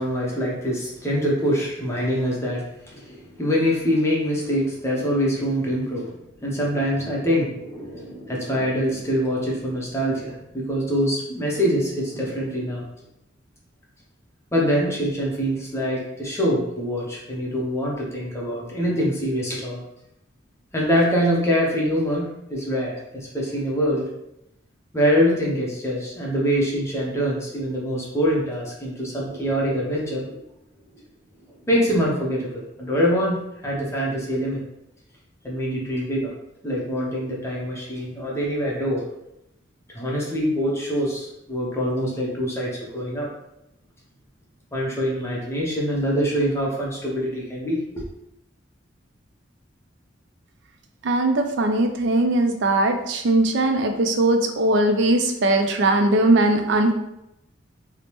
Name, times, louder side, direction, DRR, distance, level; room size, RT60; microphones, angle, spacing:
voice 1, 0.0-12.9 14.5-19.8 20.7-24.1 24.9-30.4 31.7-34.6 35.4-36.3 36.6-39.0 39.9-43.3 44.7-48.0, equal, 15° left, -4 dB, 0.6 m, -24 dB
voice 2, 51.0-56.9, right 2 dB, 65° right, 5 dB, 0.4 m, -20 dB
3.1 x 2.0 x 2.9 m, 0.86 s
head